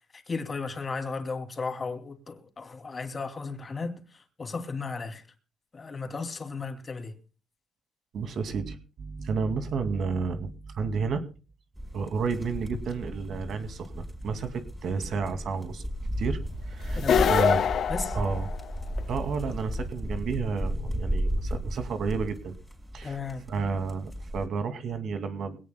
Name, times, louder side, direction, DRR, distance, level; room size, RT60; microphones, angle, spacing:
voice 1, 0.0-5.2 5.7-7.2 17.0-17.3 17.9-18.2 23.0-23.5, left 4 dB, 35° left, 2.6 m, -35 dB
voice 2, 8.1-11.2 11.9-15.9 16.2-16.4 16.7-17.0 17.3-17.6 18.1-18.5 19.1-22.5 22.9-23.2 23.5-25.6, right 5 dB, 65° right, 2.3 m, -31 dB
sound 1, 11.7-24.5, equal, 10° right, 4.9 m, -34 dB
sound 2, 17.0-19.0, left 8 dB, 60° left, 0.6 m, -24 dB
22.0 x 17.5 x 2.2 m
cardioid pair, 90°, 0 cm